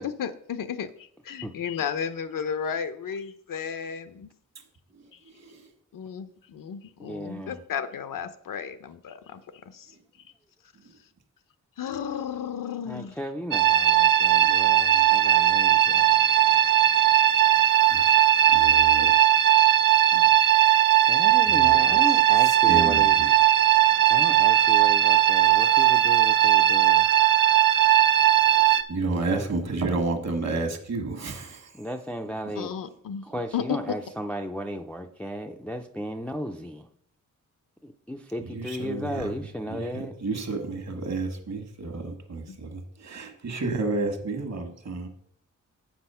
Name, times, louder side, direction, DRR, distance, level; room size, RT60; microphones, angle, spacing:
voice 1, 0.0-4.3 5.9-9.4 9.7-9.9 11.8-13.1 32.6-33.2 33.5-33.8 42.5-42.6, left 7 dB, 85° left, 10 dB, 0.8 m, -33 dB
voice 2, 5.2-5.7 17.9-18.0 18.5-19.1 21.4-22.0 22.4-23.3 28.6-31.7 38.4-39.3 39.7-45.1, right 3 dB, 55° right, 5 dB, 1.4 m, -31 dB
voice 3, 7.0-7.6 12.9-16.2 19.0-19.1 20.1-20.4 21.1-23.2 24.1-27.1 29.3-29.5 31.7-32.7 33.2-36.9 37.8-40.1, equal, 5° left, 5 dB, 0.3 m, -35 dB
sound 1, 13.5-28.8, right 12 dB, 85° right, 0.7 m, -19 dB
8.6 x 6.1 x 5.5 m, 0.67 s
wide cardioid pair, 175°, 32 cm